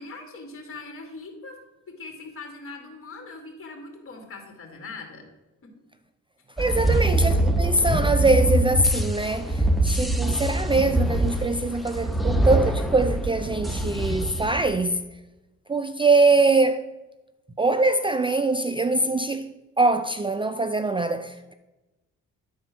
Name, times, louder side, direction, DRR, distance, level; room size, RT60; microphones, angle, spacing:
voice 1, 0.0-1.6 1.9-5.3 5.6-5.7 6.7-7.1, left 3 dB, 45° left, 2.5 m, -41 dB
sound 1, 6.6-14.7, right 1 dB, ahead, 1.0 m, -24 dB
voice 2, 6.6-15.0 15.7-16.8 17.6-19.5 19.8-21.5, right 2 dB, 15° right, 0.4 m, -23 dB
11.5 x 4.2 x 6.1 m
cardioid pair, 90°, 30 cm